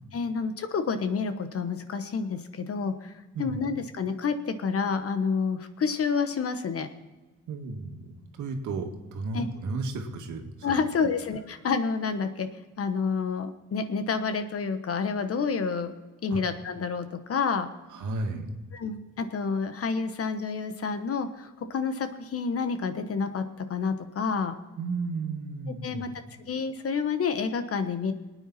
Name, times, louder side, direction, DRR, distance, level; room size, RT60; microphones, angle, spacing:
voice 1, 0.1-3.1 3.4-6.9 9.3-9.5 10.6-12.5 12.8-15.9 16.2-17.7 18.7-24.6 25.8-26.1 26.5-28.1, left 5 dB, 50° left, 9 dB, 1.2 m, -29 dB
voice 2, 7.5-10.8 16.3-16.4 17.9-18.5 24.8-26.0, right 3 dB, 75° right, 3 dB, 2.0 m, -33 dB
20.0 x 9.3 x 4.2 m, 1.2 s
cardioid pair, 90°, 30 cm